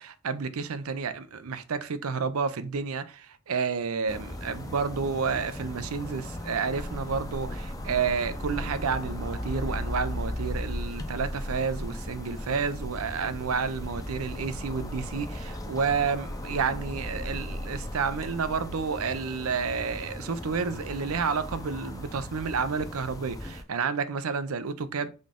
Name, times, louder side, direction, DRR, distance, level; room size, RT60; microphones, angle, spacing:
voice 1, 0.0-25.1, right 5 dB, 85° right, 0.5 m, -30 dB
sound 1, 4.1-23.6, left 1 dB, 15° left, 0.6 m, -38 dB
sound 2, 6.7-19.6, equal, 25° right, 0.6 m, -39 dB
3.9 x 3.7 x 3.5 m
head